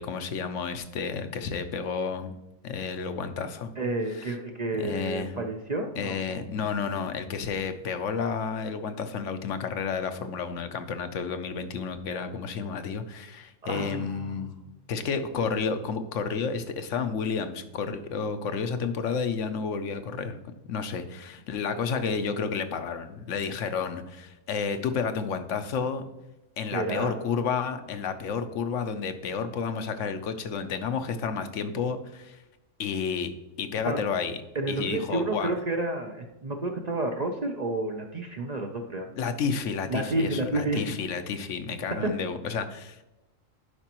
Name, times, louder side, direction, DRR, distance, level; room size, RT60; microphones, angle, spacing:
voice 1, 0.0-2.4 2.6-3.7 4.1-4.4 4.8-5.4 6.0-14.5 14.9-20.4 20.7-26.0 26.6-32.4 32.8-33.3 33.6-34.4 34.7-35.5 39.2-43.0, left 5 dB, 70° left, 9 dB, 1.0 m, -31 dB
voice 2, 3.8-6.2 13.6-14.6 26.7-27.2 33.8-34.0 34.6-39.1 39.9-40.8 41.9-42.1, right 2 dB, 45° right, 4 dB, 0.5 m, -30 dB
11.0 x 5.1 x 2.9 m, 1.0 s
omnidirectional pair, 1.4 m